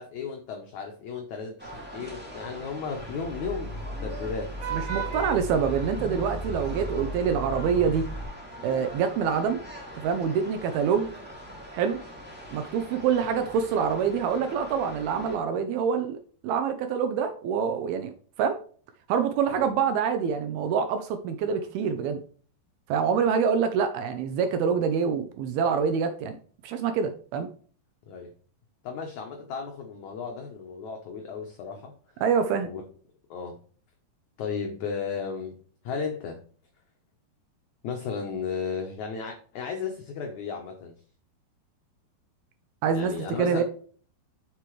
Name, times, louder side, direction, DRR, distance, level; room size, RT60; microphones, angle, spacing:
voice 1, 0.0-4.7 5.1-5.4 19.5-19.7 28.1-28.3 28.8-31.9 32.6-32.8 33.3-33.6 34.4-35.6 35.8-36.4 37.8-40.9 42.9-43.6, left 5 dB, 75° left, 2 dB, 1.7 m, -34 dB
sound 1, 1.6-15.4, equal, 10° right, 0.4 m, -43 dB
Vehicle horn car horn honking / Traffic noise roadway noise, 2.9-8.2, right 2 dB, 50° right, 2.4 m, -35 dB
voice 2, 4.7-8.1 8.6-9.6 10.0-11.1 11.7-12.0 12.5-16.2 16.4-18.1 18.4-18.6 19.1-22.2 22.9-26.4 26.6-27.5 32.2-32.7 42.8-43.6, right 6 dB, 75° right, 8 dB, 2.4 m, -26 dB
7.9 x 6.9 x 3.2 m, 0.44 s
omnidirectional pair, 4.8 m